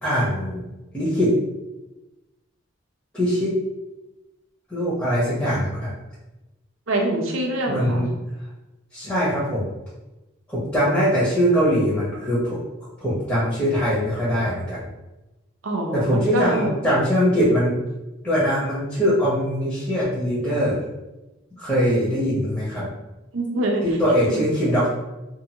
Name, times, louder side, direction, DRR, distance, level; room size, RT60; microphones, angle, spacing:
voice 1, 0.0-0.6 0.9-1.3 3.1-3.6 4.7-5.9 7.7-8.1 8.9-9.7 10.5-12.6 13.0-14.8 15.9-17.8 18.2-20.8 21.6-22.9 23.8-24.9, equal, 10° left, -9 dB, 0.9 m, -22 dB
voice 2, 6.9-8.1 15.6-16.8 23.3-23.8, right 1 dB, 80° right, 2 dB, 0.6 m, -24 dB
2.6 x 2.5 x 2.8 m, 1.0 s
head